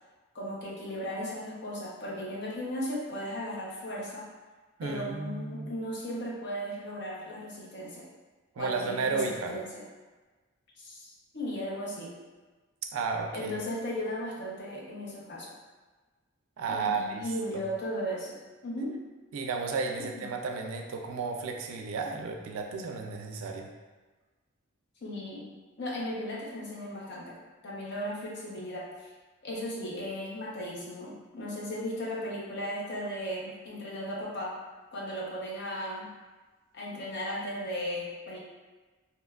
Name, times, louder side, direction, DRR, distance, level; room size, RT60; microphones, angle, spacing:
voice 1, 0.3-4.3 4.8-8.1 8.6-9.8 10.8-12.2 13.3-15.5 16.7-19.0 20.1-20.2 25.0-25.5 25.8-27.4 27.6-29.1 29.4-34.6 34.9-36.1 36.7-38.4, equal, 55° left, -4 dB, 0.6 m, -36 dB
voice 2, 4.8-5.7 8.6-9.5 12.9-13.6 16.6-17.2 17.5-17.6 19.3-23.7, right 4 dB, 75° right, 3 dB, 0.3 m, -33 dB
2.8 x 2.2 x 2.3 m, 1.3 s
head